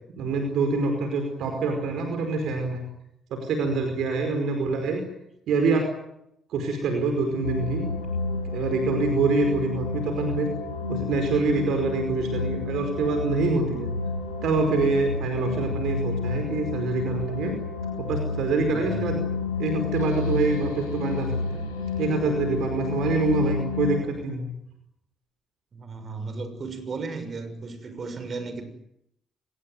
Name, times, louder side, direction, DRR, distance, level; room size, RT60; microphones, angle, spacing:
voice 1, 0.1-2.8 3.4-5.0 5.5-5.8 6.5-7.8 8.5-10.5 10.9-13.9 14.4-17.5 18.0-19.2 19.6-21.6 22.0-24.5, right 3 dB, 65° right, 5 dB, 5.0 m, -25 dB
sound 1, 7.4-24.0, left 4 dB, 85° left, 6.9 m, -30 dB
voice 2, 18.6-19.1 25.7-28.6, right 4 dB, 45° right, 9 dB, 6.3 m, -35 dB
25.5 x 21.0 x 9.4 m, 0.79 s
figure-of-eight pair, 40°, 0 cm